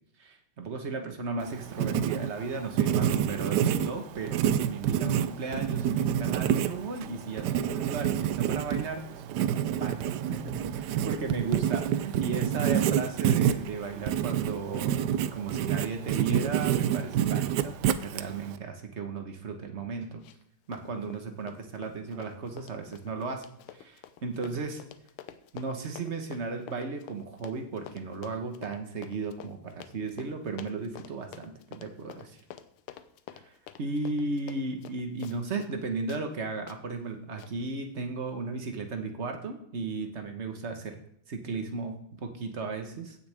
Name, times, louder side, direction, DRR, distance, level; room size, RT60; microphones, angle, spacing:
voice 1, 0.2-9.2 9.8-20.2 20.7-23.4 23.7-24.8 25.5-32.4 33.4-33.5 33.8-40.9 41.3-43.2, right 4 dB, 40° right, 5 dB, 1.3 m, -35 dB
Writing, 1.4-18.6, right 10 dB, 75° right, 0.9 m, -28 dB
Run, 20.2-20.5 20.7-35.8 36.1-36.2 36.7-36.8 37.4-37.5, left 10 dB, 90° left, 1.6 m, -48 dB
16.0 x 6.8 x 3.5 m, 0.71 s
omnidirectional pair, 2.3 m